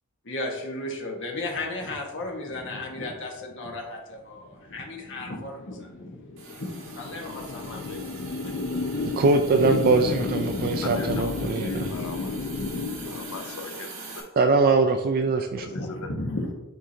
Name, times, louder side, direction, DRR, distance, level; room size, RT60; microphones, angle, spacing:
voice 1, 0.3-6.2 6.6-8.0 8.4-8.5 15.5-16.5, left 2 dB, 55° left, 0 dB, 1.3 m, -34 dB
sound 1, 5.1-13.9, left 3 dB, 40° left, 0.3 m, -32 dB
Hiss, 6.4-14.2, right 3 dB, 60° right, 1.7 m, -42 dB
voice 2, 9.2-11.9 14.4-15.7, right 3 dB, 40° right, 6 dB, 0.3 m, -22 dB
voice 3, 10.8-12.4 13.0-13.9 14.1-14.3 15.6-16.1, left 3 dB, 70° left, 7 dB, 0.7 m, -39 dB
9.4 x 3.8 x 2.8 m, 1.0 s
head